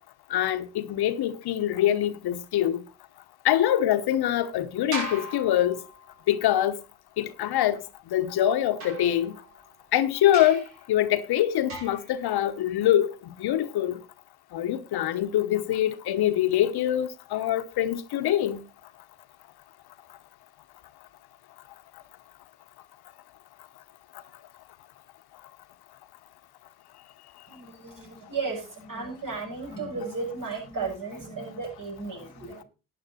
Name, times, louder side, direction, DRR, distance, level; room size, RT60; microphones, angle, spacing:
voice 1, 0.3-2.8 3.4-5.8 6.3-6.7 7.2-7.8 8.1-9.3 9.9-10.6 10.9-13.1 13.4-14.0 14.5-18.6, left 12 dB, 70° left, 1.0 m, -24 dB
sound 1, 4.9-6.3 8.8-9.7 10.3-10.8 11.7-12.2, right 1 dB, 90° right, 5.2 m, -38 dB
voice 2, 27.5-32.7, right 4 dB, 50° right, 7.0 m, -34 dB
11.0 x 9.4 x 4.3 m
supercardioid pair, 60°, 40 cm